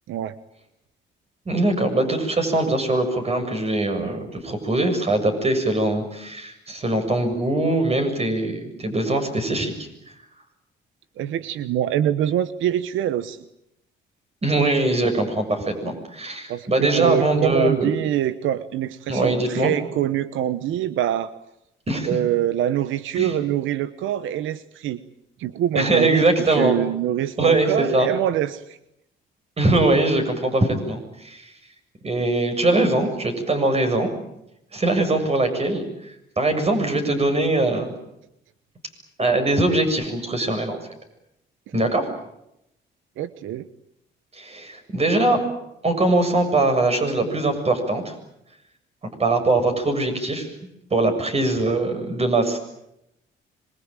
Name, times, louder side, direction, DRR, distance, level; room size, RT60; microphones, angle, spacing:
voice 1, 1.5-9.9 14.4-17.9 19.1-19.7 21.9-22.2 23.2-23.3 25.7-26.7 27.4-28.1 29.6-31.5 32.0-34.1 34.7-35.8 36.4-37.9 39.2-40.8 41.7-42.1 44.3-45.4 45.8-48.1 49.2-50.5 50.9-52.6, right 2 dB, 30° right, 6 dB, 7.2 m, -22 dB
voice 2, 11.2-13.4 16.5-21.3 22.0-25.0 25.4-28.8 43.2-43.7, right 11 dB, 85° right, 14 dB, 1.1 m, -24 dB
26.0 x 22.5 x 9.0 m, 0.82 s
cardioid pair, 90°, 20 cm